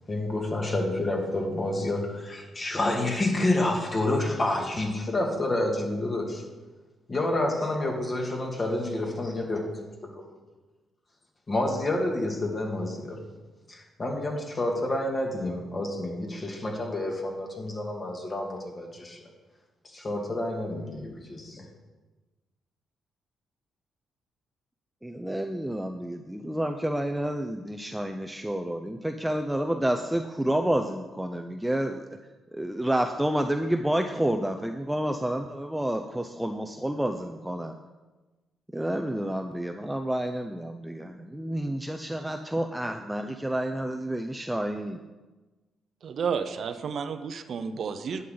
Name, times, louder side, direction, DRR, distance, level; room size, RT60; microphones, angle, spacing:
voice 1, 0.1-6.4 7.1-9.6 11.5-13.2 13.7-19.3 19.9-21.7, left 1 dB, 35° left, 0 dB, 2.4 m, -29 dB
voice 2, 25.0-32.1 32.5-37.8 38.7-45.0, right 1 dB, 5° right, 5 dB, 0.6 m, -29 dB
voice 3, 46.0-48.3, right 6 dB, 60° right, 9 dB, 0.7 m, -31 dB
11.0 x 8.4 x 4.0 m, 1.2 s
cardioid pair, 80°, 0 cm